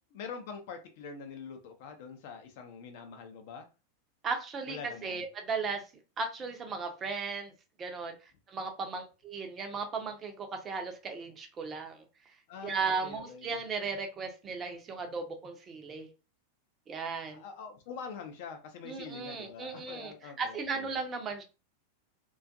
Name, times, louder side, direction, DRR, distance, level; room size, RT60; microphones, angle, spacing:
voice 1, 0.1-3.7 4.7-5.2 12.5-13.6 17.3-20.9, left 6 dB, 50° left, 6 dB, 0.5 m, -45 dB
voice 2, 4.2-5.8 6.2-7.5 7.8-12.4 12.6-16.1 16.9-17.4 18.8-21.4, right 4 dB, 25° right, 4 dB, 0.5 m, -36 dB
2.5 x 2.3 x 2.5 m, 0.31 s
figure-of-eight pair, 90°, 0 cm